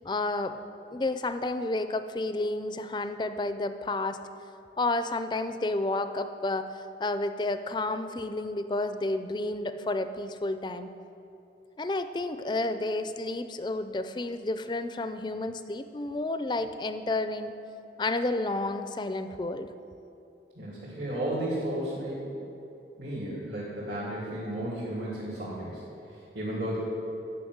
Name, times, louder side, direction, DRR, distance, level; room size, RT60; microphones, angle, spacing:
voice 1, 0.0-0.6 0.9-4.2 4.8-10.9 11.8-17.5 18.0-19.7, left 2 dB, 25° left, 10 dB, 0.4 m, -31 dB
voice 2, 20.5-22.3 23.0-25.8 26.3-26.8, right 1 dB, 70° right, -9 dB, 2.7 m, -33 dB
11.0 x 5.9 x 7.9 m, 2.9 s
head